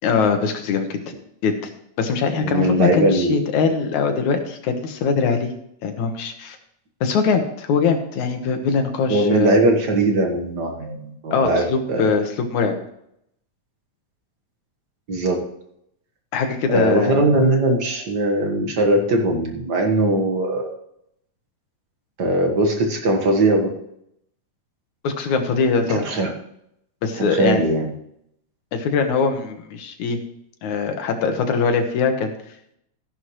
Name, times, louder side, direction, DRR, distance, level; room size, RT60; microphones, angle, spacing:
voice 1, 0.0-1.0 1.4-1.6 2.0-5.5 5.8-6.6 7.0-9.6 11.3-12.7 16.3-17.2 25.0-26.1 27.0-27.6 28.7-30.2 30.6-32.3, left 5 dB, 70° left, 5 dB, 2.6 m, -21 dB
voice 2, 2.3-3.4 9.1-12.1 15.1-15.4 16.7-20.7 22.2-23.7 25.9-26.3 27.1-27.9, right 2 dB, 45° right, 3 dB, 1.4 m, -20 dB
14.5 x 11.0 x 3.1 m, 0.75 s
omnidirectional pair, 3.6 m